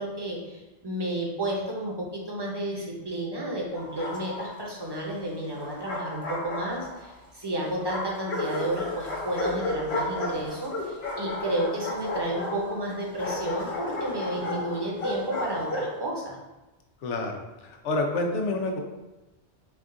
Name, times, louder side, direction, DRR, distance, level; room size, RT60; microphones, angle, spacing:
voice 1, 0.0-16.4, right 1 dB, 25° right, -2 dB, 0.7 m, -32 dB
Bark, 3.7-4.6 5.5-7.1 7.9-16.0, left 2 dB, 60° left, 1.3 m, -33 dB
voice 2, 17.0-18.8, left 2 dB, 90° left, 2 dB, 1.0 m, -28 dB
4.3 x 2.4 x 3.7 m, 1.1 s
omnidirectional pair, 1.2 m